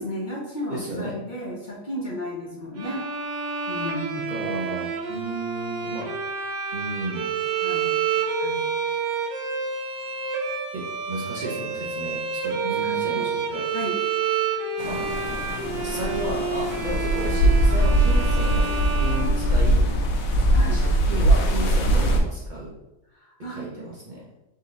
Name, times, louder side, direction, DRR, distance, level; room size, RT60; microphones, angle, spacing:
voice 1, 0.0-3.0 3.7-4.4 7.6-7.9 8.4-8.6 12.6-13.3 13.7-14.0 20.5-20.8 23.4-23.6, left 1 dB, 40° left, -5 dB, 1.0 m, -33 dB
voice 2, 0.7-1.2 4.3-6.1 6.7-7.3 10.7-13.7 14.9-15.0 15.8-19.9 20.7-22.7 23.5-24.2, right 1 dB, 40° right, -6 dB, 0.9 m, -33 dB
Bowed string instrument, 2.8-20.0, right 6 dB, 70° right, 1.0 m, -29 dB
sound 1, 14.8-22.2, right 1 dB, 90° left, 1.2 m, -21 dB
4.0 x 2.9 x 3.8 m, 0.95 s
omnidirectional pair, 1.4 m